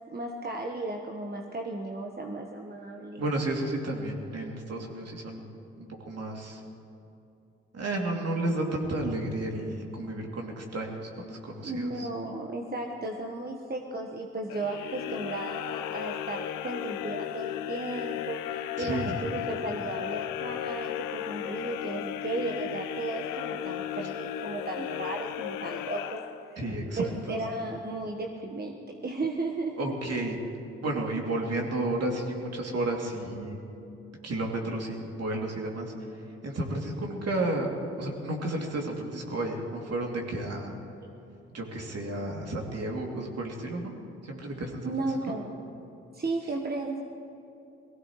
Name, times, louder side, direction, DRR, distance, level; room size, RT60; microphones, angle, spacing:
voice 1, 0.1-3.2 11.6-26.2 26.5-26.7 27.0-30.0 44.8-45.5 46.1-47.0, right 2 dB, 30° right, 2 dB, 1.4 m, -35 dB
voice 2, 3.2-6.6 7.7-12.1 18.8-19.4 26.6-27.4 29.8-30.4 30.8-33.6 34.2-35.9 36.4-37.7 38.0-40.7 41.5-43.9 44.2-44.9, right 1 dB, 50° right, 0 dB, 2.9 m, -32 dB
sound 1, 14.5-26.8, left 11 dB, 75° left, 0.7 m, -35 dB
22.0 x 16.0 x 3.2 m, 2.8 s
hypercardioid pair, 40°, 32 cm